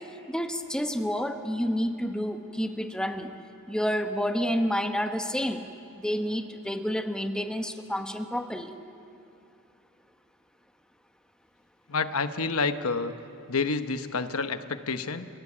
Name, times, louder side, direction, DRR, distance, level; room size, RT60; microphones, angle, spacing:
voice 1, 0.3-3.3 3.7-5.6 5.9-8.7, equal, 5° left, 6 dB, 1.0 m, -29 dB
voice 2, 11.9-13.1 13.5-15.3, left 4 dB, 75° left, 9 dB, 1.0 m, -28 dB
29.0 x 16.0 x 8.5 m, 2.6 s
head